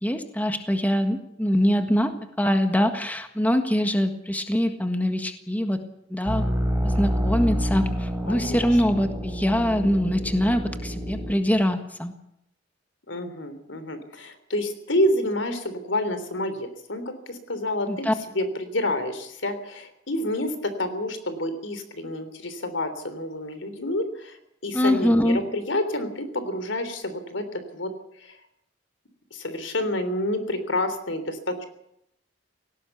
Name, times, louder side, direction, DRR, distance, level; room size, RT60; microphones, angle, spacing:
voice 1, 0.0-5.8 6.1-6.4 6.8-12.1 17.9-18.1 24.7-25.4, equal, 10° left, 6 dB, 1.6 m, -23 dB
sound 1, 6.3-11.3, equal, 10° right, 3.8 m, -28 dB
voice 2, 8.3-8.8 13.1-18.0 18.3-24.4 24.6-27.9 28.2-28.4 29.3-31.6, left 1 dB, 75° left, 11 dB, 3.4 m, -28 dB
18.0 x 17.0 x 8.2 m, 0.76 s
head